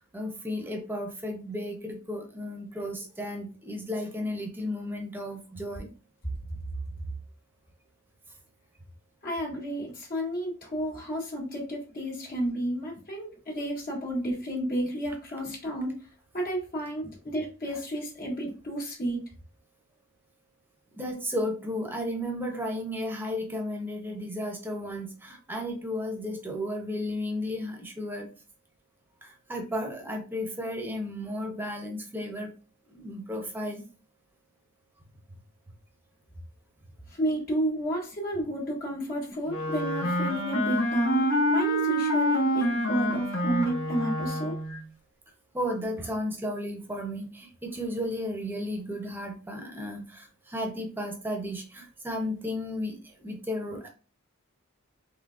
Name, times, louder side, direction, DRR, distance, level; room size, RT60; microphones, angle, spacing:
voice 1, 0.1-5.9 13.6-13.7 20.9-28.3 29.2-32.5 32.9-33.8 45.5-53.9, left 1 dB, 10° right, 2 dB, 0.7 m, -34 dB
voice 2, 9.2-16.0 16.3-19.2 37.1-44.5, right 1 dB, 45° left, -3 dB, 1.2 m, -31 dB
Wind instrument woodwind instrument, 39.5-44.8, equal, 65° left, 0.9 m, -27 dB
3.7 x 3.1 x 2.5 m, 0.34 s
head